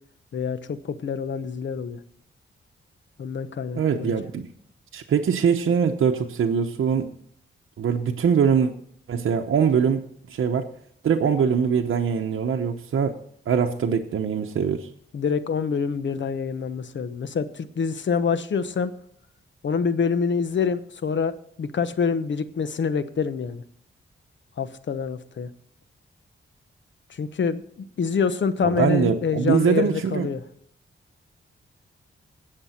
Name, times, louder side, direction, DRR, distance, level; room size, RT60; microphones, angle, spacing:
voice 1, 0.3-2.0 3.2-4.2 15.1-18.9 19.6-23.6 24.6-25.5 27.1-30.4, left 5 dB, 60° left, 12 dB, 1.0 m, -26 dB
voice 2, 3.7-4.5 4.9-7.1 7.8-8.7 9.1-10.7 11.0-13.2 13.5-14.9 28.6-30.3, right 7 dB, 75° right, 2 dB, 0.9 m, -22 dB
17.5 x 6.8 x 4.4 m, 0.67 s
cardioid pair, 90°, 21 cm